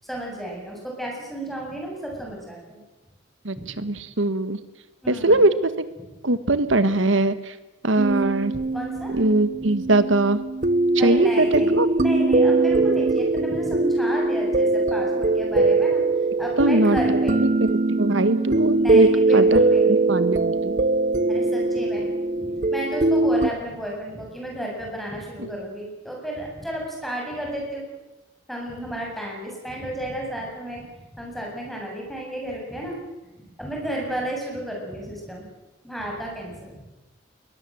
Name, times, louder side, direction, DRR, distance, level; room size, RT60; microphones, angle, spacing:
voice 1, 0.0-2.8 3.6-3.7 5.0-5.5 8.7-9.2 9.8-9.9 11.0-17.4 18.7-20.0 21.3-22.1 22.3-27.8 28.5-33.0 33.6-35.5 35.8-36.9, right 1 dB, ahead, -1 dB, 7.7 m, -33 dB
voice 2, 3.4-4.6 5.1-5.8 6.2-7.5 7.8-8.5 9.2-10.4 10.9-11.9 16.6-17.2 17.6-19.6 20.1-20.7 25.4-25.5, right 2 dB, 75° right, 12 dB, 1.5 m, -21 dB
sound 1, 8.0-23.5, right 2 dB, 40° right, 0.7 m, -21 dB
21.5 x 20.5 x 7.8 m, 1.1 s
head